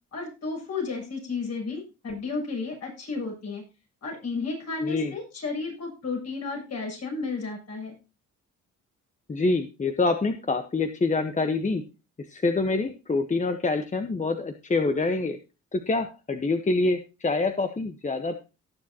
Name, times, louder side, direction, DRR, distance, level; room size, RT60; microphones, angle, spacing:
voice 1, 0.1-3.6 4.0-7.9, left 4 dB, 55° left, 0 dB, 7.3 m, -33 dB
voice 2, 4.8-5.1 9.3-11.8 12.3-15.4 15.7-18.4, left 3 dB, 25° left, 7 dB, 1.1 m, -26 dB
18.0 x 7.5 x 2.9 m, 0.30 s
cardioid pair, 90°, 30 cm